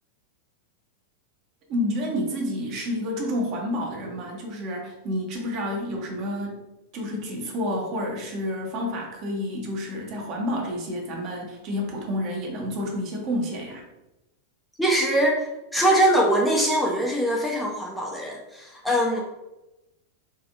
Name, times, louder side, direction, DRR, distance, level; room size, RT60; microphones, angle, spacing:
voice 1, 1.7-6.6 6.9-13.8, left 1 dB, 40° right, 0 dB, 0.9 m, -29 dB
voice 2, 14.8-19.2, right 1 dB, 5° left, -2 dB, 0.6 m, -22 dB
4.2 x 2.5 x 2.4 m, 0.97 s
figure-of-eight pair, 90°, 0 cm